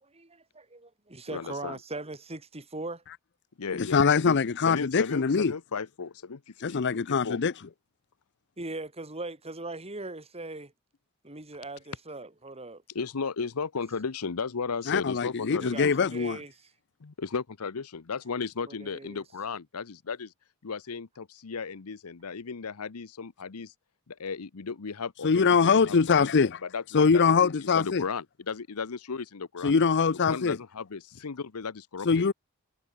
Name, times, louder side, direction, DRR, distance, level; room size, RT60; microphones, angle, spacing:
voice 1, 0.0-3.0 8.6-10.7 11.2-12.8 15.5-16.7 18.7-19.2, right 2 dB, 30° right, 4.3 m, -40 dB
voice 2, 1.3-1.8 3.6-6.8 7.1-7.4 12.9-16.1 17.0-20.3 20.6-23.7 24.1-26.3 26.6-29.7 30.3-32.2, left 5 dB, 85° left, 0.8 m, -35 dB
voice 3, 3.7-5.5 6.6-7.5 14.9-16.4 25.2-26.6 26.9-28.0 29.6-30.6 32.1-32.3, left 5 dB, 55° left, 0.6 m, -23 dB
head